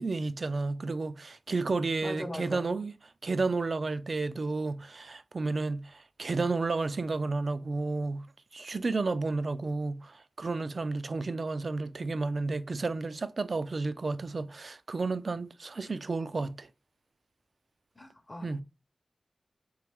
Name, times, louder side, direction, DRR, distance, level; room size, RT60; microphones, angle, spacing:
voice 1, 0.0-3.0 3.2-8.3 8.5-16.7 18.4-18.6, right 3 dB, 60° right, 0.4 m, -32 dB
voice 2, 2.0-2.7 18.0-18.6, left 1 dB, 25° left, 0.7 m, -40 dB
3.9 x 3.1 x 3.5 m
wide cardioid pair, 75°, 0 cm